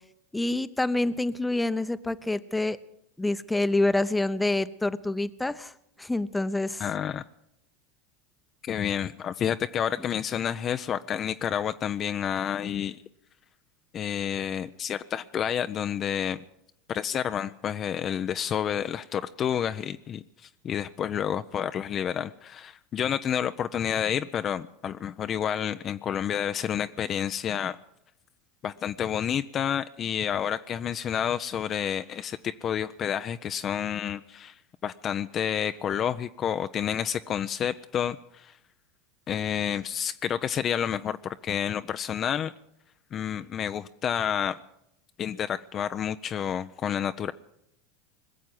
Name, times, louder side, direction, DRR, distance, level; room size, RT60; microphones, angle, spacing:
voice 1, 0.3-2.8 3.2-5.7 6.0-6.8, left 2 dB, 10° left, 14 dB, 0.8 m, -27 dB
voice 2, 6.8-7.2 8.6-13.0 13.9-16.4 16.9-20.2 20.6-27.8 28.6-34.5 34.8-38.5 39.3-42.5 43.1-44.6 45.2-47.3, left 9 dB, 40° left, 10 dB, 0.5 m, -29 dB
20.5 x 7.4 x 9.6 m, 0.81 s
hypercardioid pair, 90°, 0 cm